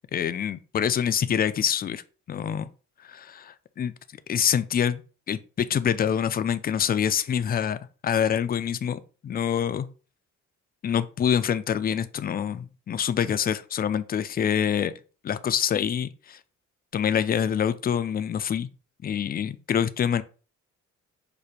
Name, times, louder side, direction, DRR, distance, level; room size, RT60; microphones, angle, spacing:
voice 1, 0.1-2.0 2.3-2.7 3.0-3.9 4.3-5.0 5.3-9.9 10.8-14.9 15.2-16.4 16.9-18.7 19.0-20.2, left 8 dB, 30° left, 0.4 m, -26 dB
5.0 x 2.2 x 4.2 m
cardioid pair, 90°, 30 cm